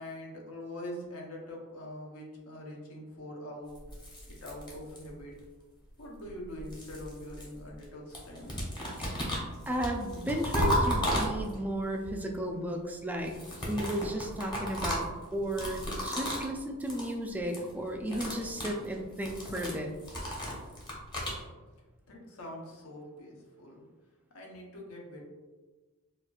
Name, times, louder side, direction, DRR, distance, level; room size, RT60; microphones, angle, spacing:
voice 1, 0.0-3.8 4.3-5.3 6.0-8.5 22.1-23.8 24.3-25.3, left 1 dB, 70° left, -1 dB, 0.8 m, -43 dB
sound 1, 3.7-5.3 6.3-7.9 8.1-11.8 13.2-16.5 16.8-17.1 17.4-17.7 18.0-21.4, equal, 20° left, 0.8 m, -34 dB
voice 2, 9.7-13.3 13.7-15.0 15.3-19.9, right 1 dB, 5° right, 2 dB, 0.3 m, -34 dB
4.2 x 2.4 x 2.3 m, 1.3 s
head